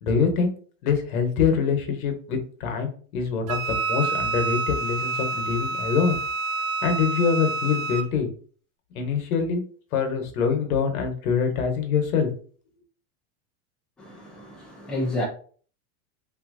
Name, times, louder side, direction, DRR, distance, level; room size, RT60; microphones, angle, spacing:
voice 1, 0.0-0.5 0.8-6.2 6.8-8.3 8.9-9.6 9.9-12.3, left 6 dB, 90° left, 1.1 m, -24 dB
Wind instrument woodwind instrument, 3.5-8.1, right 4 dB, 75° right, 0.6 m, -28 dB
voice 2, 14.0-15.3, left 1 dB, ahead, 0.5 m, -30 dB
3.3 x 2.8 x 2.5 m
supercardioid pair, 150°, 41 cm